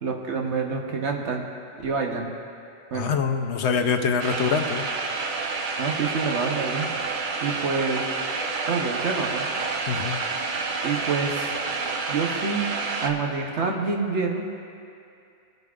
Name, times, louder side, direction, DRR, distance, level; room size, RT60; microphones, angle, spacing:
voice 1, 0.0-1.5 1.8-2.3 2.9-3.1 5.8-6.9 7.4-8.1 8.7-9.5 10.8-11.5 12.1-12.7 13.0-14.4, right 4 dB, 70° right, 2 dB, 1.2 m, -27 dB
voice 2, 2.9-4.9 9.9-10.2, left 6 dB, 70° left, 6 dB, 0.9 m, -24 dB
sound 1, 4.2-13.1, right 4 dB, 50° right, 0.7 m, -29 dB
18.5 x 7.9 x 2.4 m, 2.5 s
omnidirectional pair, 1.2 m